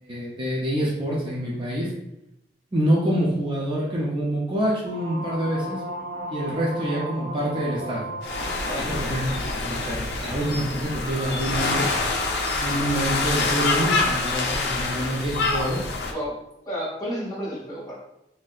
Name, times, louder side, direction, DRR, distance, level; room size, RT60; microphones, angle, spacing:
voice 1, 0.0-1.9 2.7-5.8 6.3-8.0 8.9-11.9 12.6-15.8, right 1 dB, 25° right, -5 dB, 0.5 m, -26 dB
sound 1, 4.9-9.4, right 1 dB, 75° right, 0.8 m, -35 dB
sound 2, 8.2-16.1, left 3 dB, 65° left, 0.4 m, -26 dB
voice 2, 8.6-9.0 16.1-16.3 16.6-17.9, equal, 25° left, -7 dB, 1.2 m, -31 dB
3.2 x 2.7 x 2.3 m, 0.86 s
head